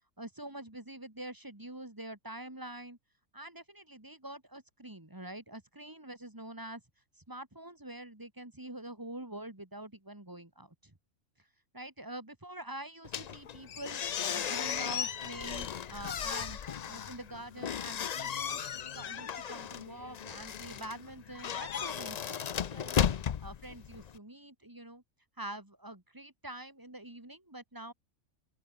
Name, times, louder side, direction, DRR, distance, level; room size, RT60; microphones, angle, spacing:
voice 1, 0.2-3.0 3.3-6.8 7.3-10.9 11.7-14.0 14.3-18.6 18.9-22.4 22.7-23.0 23.4-25.0 25.4-27.9, right 1 dB, 15° right, 2.5 m, -45 dB
wood door old open close slow creak steps enter, 13.0-24.2, left 8 dB, 90° left, 0.3 m, -36 dB
open air
omnidirectional pair, 1.5 m